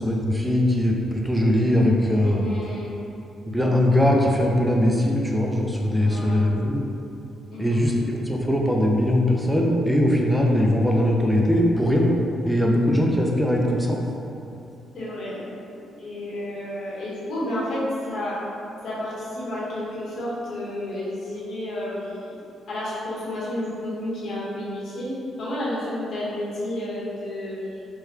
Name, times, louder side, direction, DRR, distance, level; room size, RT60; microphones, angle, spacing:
voice 1, 0.0-2.5 3.5-6.8 7.6-12.1 12.5-14.0, left 1 dB, ahead, -1 dB, 0.4 m, -21 dB
voice 2, 2.2-2.9 6.0-6.4 7.5-7.8 14.9-15.5 16.0-18.3 18.8-22.4 22.7-27.9, left 1 dB, 60° left, -8 dB, 1.1 m, -31 dB
4.6 x 2.2 x 3.2 m, 2.8 s
cardioid pair, 165°, 0 cm